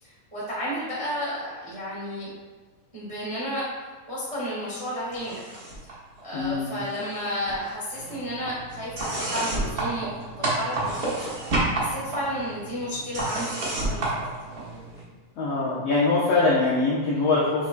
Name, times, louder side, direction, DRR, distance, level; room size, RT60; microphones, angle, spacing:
voice 1, 0.0-2.3 2.9-5.5 5.8-6.0 6.2-14.0, equal, 25° right, -8 dB, 0.6 m, -32 dB
sound 1, 5.1-5.9 6.2-7.2 7.5-15.0, right 2 dB, 70° right, 0.8 m, -30 dB
voice 2, 6.3-6.7 15.4-17.7, left 3 dB, 75° left, -7 dB, 1.5 m, -23 dB
7.5 x 6.0 x 2.2 m, 1.4 s
omnidirectional pair, 4.1 m